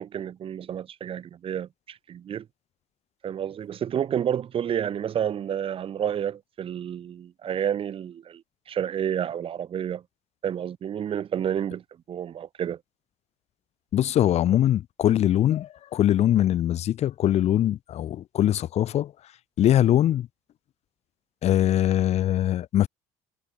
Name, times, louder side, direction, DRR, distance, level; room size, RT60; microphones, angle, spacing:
voice 1, 0.0-2.4 3.2-8.4 8.7-10.0 10.4-11.8 12.1-12.8, right 9 dB, 45° right, 3.1 m, -30 dB
voice 2, 13.9-19.1 19.6-20.3 21.4-22.9, left 12 dB, 55° left, 6.7 m, -22 dB
cardioid pair, 115°, 13 cm